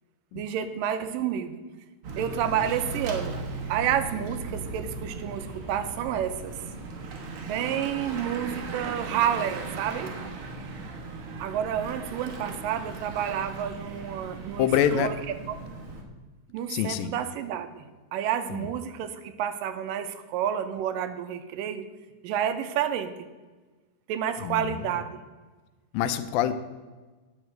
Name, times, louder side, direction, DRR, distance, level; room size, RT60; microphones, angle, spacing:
voice 1, 0.3-1.6 2.2-3.3 3.7-6.6 7.4-10.1 11.4-14.7 14.9-15.2 15.5-15.6 16.5-21.9 22.2-23.3 24.1-25.2, right 9 dB, 80° right, 9 dB, 2.2 m, -30 dB
Bicycle / Mechanisms, 2.0-16.0, right 3 dB, 60° right, 1.4 m, -37 dB
voice 2, 14.6-15.1 16.7-17.1 18.5-18.7 24.4-24.8 25.9-26.5, left 10 dB, 85° left, 12 dB, 2.3 m, -25 dB
9.7 x 6.3 x 7.6 m, 1.3 s
omnidirectional pair, 4.1 m